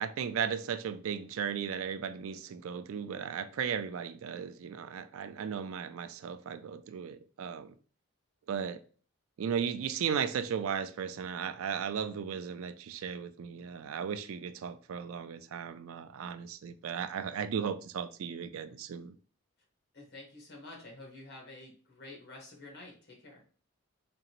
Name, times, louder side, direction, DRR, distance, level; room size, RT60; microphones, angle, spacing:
voice 1, 0.0-7.7 8.5-8.8 9.4-19.2, right 7 dB, 75° right, 0.3 m, -36 dB
voice 2, 19.9-23.4, left 2 dB, 50° left, 1.5 m, -49 dB
3.8 x 3.3 x 3.0 m
head